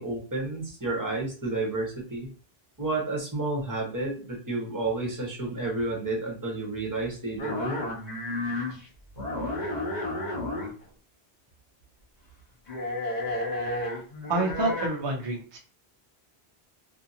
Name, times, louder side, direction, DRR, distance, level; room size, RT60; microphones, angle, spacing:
voice 1, 0.0-2.3 2.8-7.8, right 2 dB, 20° right, 0 dB, 0.8 m, -31 dB
sound 1, 7.4-8.8 9.2-10.8 12.7-14.9, left 1 dB, 45° left, 1.0 m, -31 dB
voice 2, 14.3-15.6, right 2 dB, 35° right, 0 dB, 0.4 m, -28 dB
2.7 x 2.7 x 2.6 m, 0.39 s
omnidirectional pair, 1.1 m